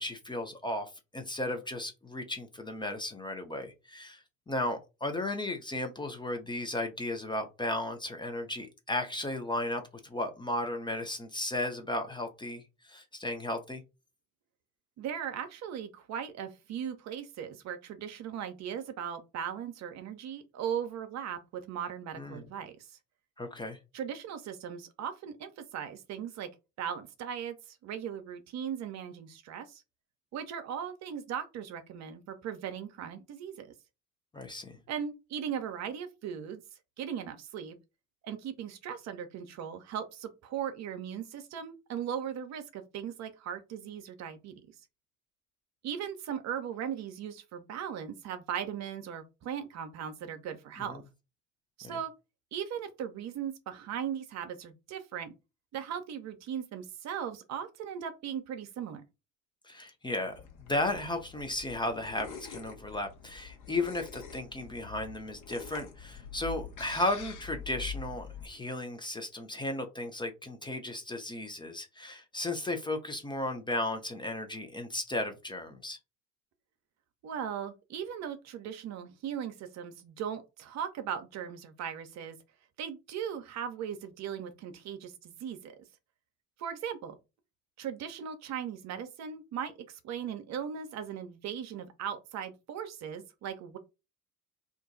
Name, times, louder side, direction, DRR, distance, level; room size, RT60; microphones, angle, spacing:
voice 1, 0.0-13.8 22.2-22.5 23.4-23.8 34.3-34.8 50.9-51.0 51.8-52.0 59.6-60.3 60.6-76.0, left 1 dB, 10° left, 0.6 m, -35 dB
voice 2, 15.0-23.0 23.9-26.5 26.8-29.8 30.3-33.7 34.9-36.6 37.0-37.8 38.2-44.5 45.8-51.0 51.8-52.1 52.5-55.3 55.7-59.0 77.2-82.4 82.8-85.8 86.6-87.1 87.8-93.8, right 8 dB, 45° right, 0.7 m, -38 dB
sound 1, 60.3-68.5, left 6 dB, 50° left, 1.1 m, -45 dB
2.5 x 2.2 x 3.9 m
hypercardioid pair, 65°, 40 cm